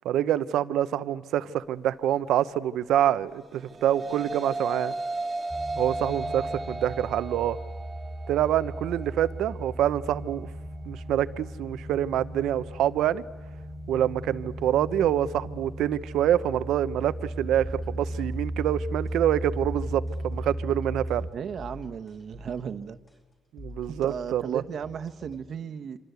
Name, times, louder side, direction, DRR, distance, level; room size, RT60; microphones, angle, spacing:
voice 1, 0.0-4.9 5.8-7.6 8.3-10.5 10.9-13.2 13.9-21.3 23.5-24.6, right 11 dB, 80° right, 0.9 m, -26 dB
sound 1, 3.4-12.6, right 2 dB, 35° right, 1.7 m, -36 dB
sound 2, 5.5-21.3, right 1 dB, 5° left, 3.6 m, -36 dB
sound 3, 17.6-25.6, left 2 dB, 25° left, 4.6 m, -48 dB
voice 2, 21.3-23.0 23.9-26.0, right 7 dB, 60° right, 1.3 m, -35 dB
26.5 x 25.5 x 8.3 m
cardioid pair, 90°, 0 cm